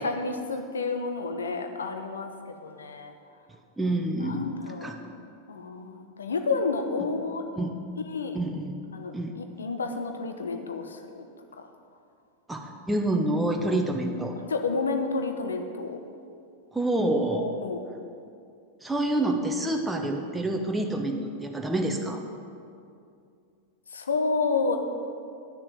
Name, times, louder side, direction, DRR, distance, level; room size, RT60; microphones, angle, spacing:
voice 1, 0.0-3.1 4.2-5.0 5.5-7.4 8.0-8.4 8.9-11.3 14.4-16.0 17.3-17.9 23.9-24.8, left 4 dB, 70° left, 6 dB, 0.9 m, -30 dB
voice 2, 3.8-4.5 4.8-5.0 7.6-7.7 8.3-8.8 9.1-9.4 12.5-14.4 16.7-17.5 18.8-22.2, right 1 dB, 5° right, 2 dB, 0.8 m, -27 dB
10.0 x 6.7 x 7.4 m, 2.4 s
figure-of-eight pair, 90°, 0 cm